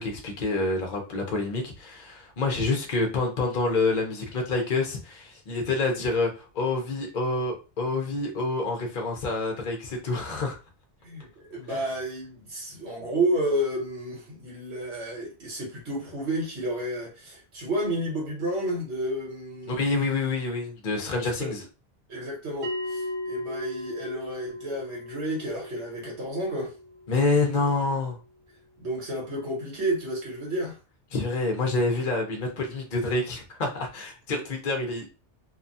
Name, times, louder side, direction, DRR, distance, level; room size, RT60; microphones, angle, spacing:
voice 1, 0.0-10.6 11.7-11.8 19.7-21.6 27.1-28.2 31.1-35.1, left 3 dB, 50° left, 0.7 m, -27 dB
voice 2, 11.0-19.8 21.4-21.6 22.1-26.7 28.8-30.8, right 1 dB, 70° right, 1.6 m, -31 dB
Bell, 22.6-27.7, left 1 dB, 45° right, 0.8 m, -37 dB
2.9 x 2.3 x 2.6 m
omnidirectional pair, 1.2 m